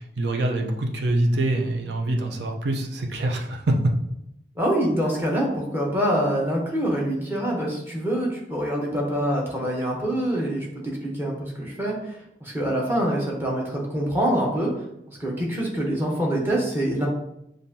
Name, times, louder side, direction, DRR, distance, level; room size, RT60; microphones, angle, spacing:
voice 1, 0.2-4.0, right 1 dB, 75° right, 2 dB, 0.6 m, -24 dB
voice 2, 4.6-14.7 15.1-17.1, right 1 dB, 10° right, -2 dB, 0.9 m, -25 dB
7.1 x 2.5 x 2.7 m, 0.83 s
head